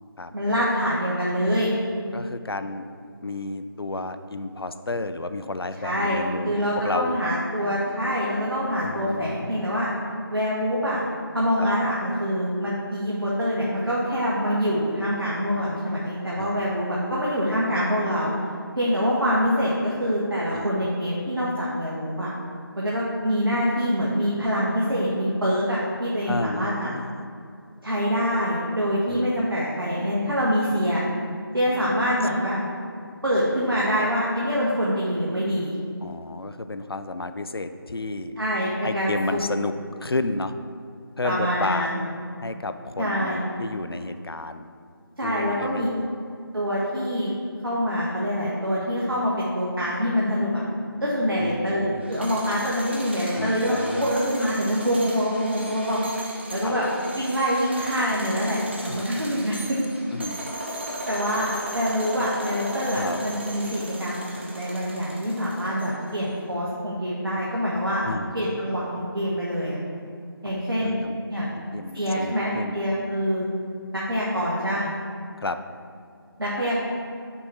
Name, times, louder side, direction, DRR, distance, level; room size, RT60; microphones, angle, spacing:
voice 1, 0.3-1.7 5.8-9.9 10.3-11.0 11.3-18.3 18.8-22.3 22.8-26.9 27.8-31.0 31.5-32.6 33.2-35.7 38.4-39.4 41.2-42.0 43.0-43.4 45.2-45.9 46.5-47.3 47.6-50.6 51.0-56.0 56.5-56.9 57.1-59.8 61.1-68.1 68.3-69.8 70.4-71.0 71.3-71.5 71.9-73.4 73.9-74.8 76.4-76.8, equal, 65° right, -6 dB, 1.3 m, -25 dB
voice 2, 2.1-2.8 3.2-7.2 8.8-9.7 11.6-11.7 16.4-16.6 20.5-20.7 26.3-27.3 29.1-29.3 36.0-38.3 38.8-39.7 40.0-40.5 41.2-41.9 42.4-44.7 45.2-46.1 51.4-51.8 53.3-54.1 56.6-56.7 58.9-59.1 60.1-60.5 63.0-63.2 68.0-68.3 70.5-71.2 71.7-72.8 75.4-75.6, left 2 dB, 75° left, 10 dB, 0.5 m, -31 dB
sound 1, 52.0-66.2, right 1 dB, 30° right, 0.6 m, -37 dB
6.1 x 3.9 x 5.5 m, 2.4 s
figure-of-eight pair, 165°, 13 cm